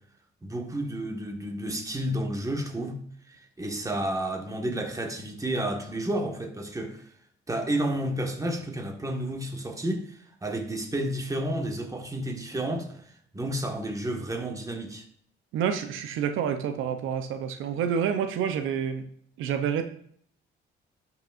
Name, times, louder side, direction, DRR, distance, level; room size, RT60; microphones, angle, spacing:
voice 1, 0.4-3.0 3.3-7.1 7.5-15.0, right 1 dB, 15° right, 3 dB, 1.5 m, -31 dB
voice 2, 15.5-19.1 19.4-19.8, right 8 dB, 85° right, 8 dB, 0.7 m, -28 dB
11.5 x 5.9 x 2.5 m, 0.63 s
cardioid pair, 90°, 20 cm